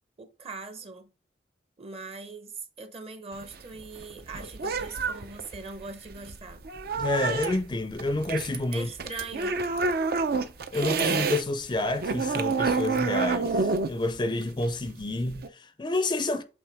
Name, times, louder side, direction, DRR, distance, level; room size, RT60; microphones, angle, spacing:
voice 1, 0.2-1.1 1.8-6.6 8.7-9.6, right 4 dB, 35° right, 0.9 m, -41 dB
sound 1, 3.3-11.4 11.7-15.5, right 4 dB, 55° right, 0.6 m, -29 dB
voice 2, 7.0-8.9 10.7-16.4, left 2 dB, 25° left, 0.5 m, -29 dB
8.0 x 3.5 x 3.5 m
head